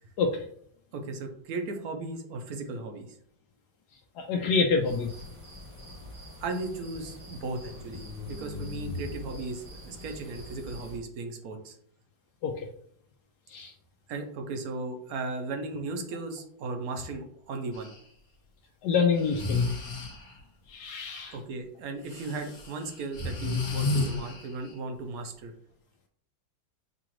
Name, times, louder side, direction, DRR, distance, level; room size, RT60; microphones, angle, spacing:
voice 1, 0.9-3.1 6.4-11.8 14.1-17.9 21.3-25.5, right 3 dB, 65° right, 5 dB, 1.1 m, -36 dB
voice 2, 4.2-5.1 12.4-12.7 13.5-13.7 18.8-19.7 20.7-21.4, left 5 dB, 75° left, 1 dB, 1.1 m, -26 dB
sound 1, 4.9-11.0, left 2 dB, 20° right, 0.9 m, -42 dB
Breathing, 17.7-18.0 19.1-20.4 22.0-24.8, left 3 dB, 45° left, 1.6 m, -32 dB
6.7 x 2.4 x 3.0 m, 0.65 s
omnidirectional pair, 1.9 m